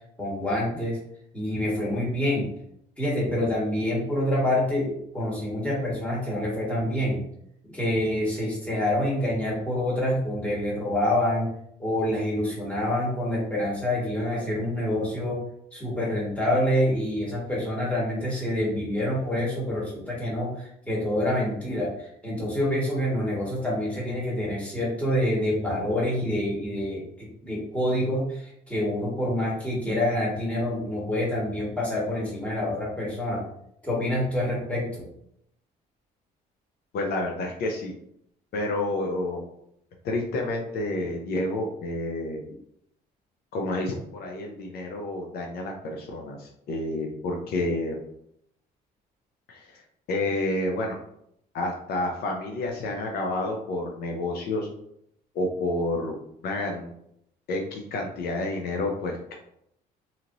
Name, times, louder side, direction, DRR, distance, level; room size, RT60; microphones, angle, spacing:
voice 1, 0.2-1.0 1.3-2.5 3.0-7.2 7.7-11.5 11.8-15.4 15.7-33.4 33.8-35.1, left 1 dB, 10° left, -6 dB, 1.5 m, -27 dB
voice 2, 36.9-37.9 38.5-39.4 40.0-42.4 43.5-48.0 49.5-49.8 50.1-51.0 51.5-54.7 55.3-56.1 56.4-56.9 57.5-59.4, left 2 dB, 65° left, 1 dB, 0.6 m, -29 dB
2.9 x 2.8 x 2.6 m, 0.73 s
cardioid pair, 110°, 17 cm